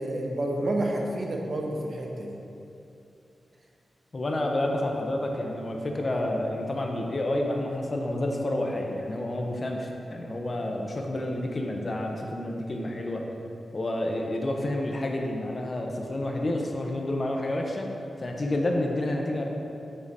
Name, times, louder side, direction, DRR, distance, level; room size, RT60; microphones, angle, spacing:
voice 1, 0.0-2.4, right 1 dB, 50° right, 0 dB, 0.9 m, -29 dB
voice 2, 4.1-13.2 13.7-17.9 18.2-19.4, left 1 dB, 35° left, 1 dB, 0.7 m, -29 dB
7.4 x 5.0 x 4.1 m, 2.7 s
wide cardioid pair, 110°, 0 cm